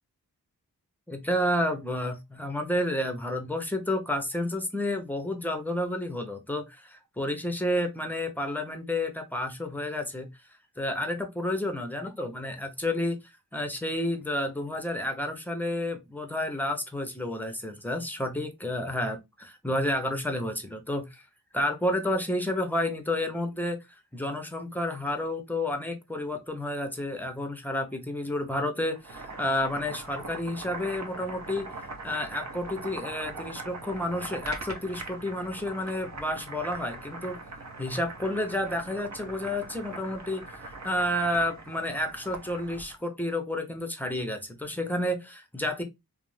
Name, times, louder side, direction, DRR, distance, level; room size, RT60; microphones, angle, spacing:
voice 1, 1.1-10.3 10.8-13.2 13.5-21.2 21.5-23.8 24.1-31.7 32.0-37.4 37.8-40.4 40.8-45.8, left 1 dB, 5° left, 0.6 m, -30 dB
Boiling, 28.9-43.0, right 3 dB, 50° right, 0.6 m, -41 dB
2.4 x 2.0 x 3.0 m
wide cardioid pair, 70°, 37 cm